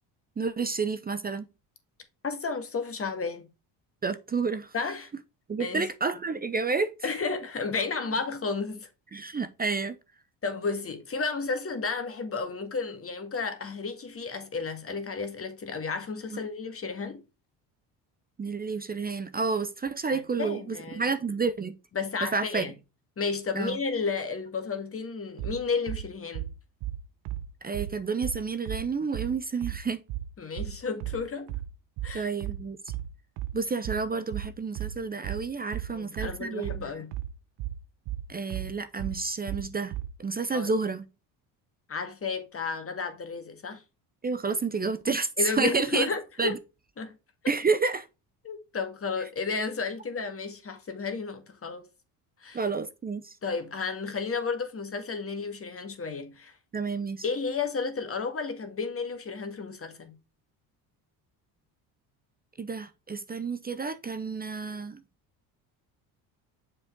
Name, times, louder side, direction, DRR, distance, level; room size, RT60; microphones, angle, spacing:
voice 1, 0.4-1.5 4.0-4.7 5.5-7.1 9.1-10.0 18.4-21.7 22.3-22.6 23.5-23.8 27.6-30.0 32.1-32.8 33.5-36.7 38.3-39.9 40.2-41.0 44.2-46.1 46.4-46.6 47.5-48.1 52.5-53.4 56.7-57.2 62.6-65.0, right 4 dB, 20° right, 0.7 m, -30 dB
voice 2, 2.2-3.5 4.7-5.1 5.6-5.9 7.0-8.9 10.4-17.2 20.1-21.0 21.9-22.7 23.2-26.5 30.4-31.6 32.0-32.3 35.9-37.1 40.5-40.7 41.9-43.8 45.4-46.6 47.0-47.2 48.4-51.8 52.4-52.6 53.4-56.5 57.2-60.2, left 4 dB, 35° left, 1.9 m, -32 dB
sound 1, 25.4-40.2, right 12 dB, 75° right, 1.1 m, -35 dB
7.0 x 5.4 x 3.7 m
supercardioid pair, 90°, 41 cm